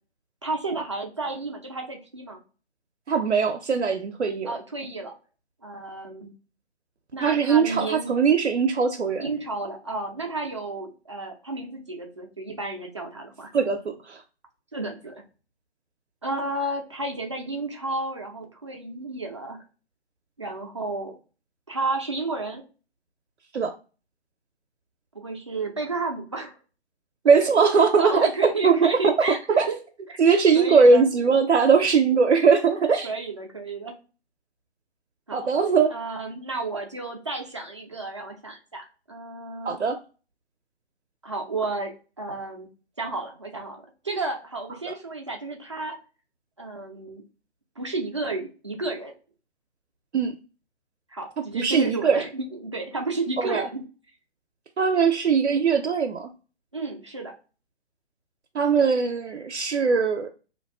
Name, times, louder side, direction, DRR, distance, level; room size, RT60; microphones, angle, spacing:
voice 1, 0.4-2.4 4.4-5.1 5.6-6.3 7.1-8.1 9.2-13.5 14.7-15.2 16.2-19.6 20.4-21.2 21.7-22.6 25.1-26.6 28.0-29.8 30.1-30.2 30.5-31.0 33.0-34.0 35.3-35.5 35.9-39.8 41.2-42.7 43.0-46.0 46.6-47.2 47.8-49.1 51.1-53.8 56.7-57.3, right 3 dB, 30° right, 2 dB, 0.4 m, -32 dB
voice 2, 3.1-4.5 7.2-9.3 13.5-13.8 14.1-14.2 23.5-23.7 27.2-28.3 28.6-28.8 29.0-29.1 29.6-29.7 30.2-33.1 35.3-35.9 39.6-40.0 50.1-50.3 51.5-52.2 53.4-53.7 54.8-56.3 58.5-60.3, right 5 dB, 85° right, 5 dB, 0.5 m, -20 dB
2.4 x 2.2 x 2.3 m, 0.35 s
figure-of-eight pair, 140°, 33 cm